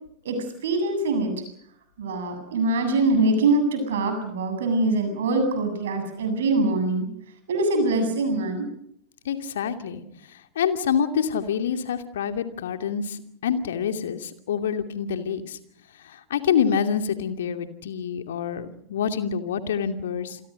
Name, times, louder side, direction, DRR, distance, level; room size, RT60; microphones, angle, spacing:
voice 1, 0.6-1.3 2.0-7.1 7.5-8.7, right 2 dB, 60° right, 7 dB, 8.0 m, -23 dB
voice 2, 9.2-10.0 10.3-15.6 16.0-20.4, left 7 dB, 60° left, 8 dB, 2.6 m, -27 dB
28.5 x 22.0 x 6.6 m, 0.69 s
figure-of-eight pair, 90°, 0 cm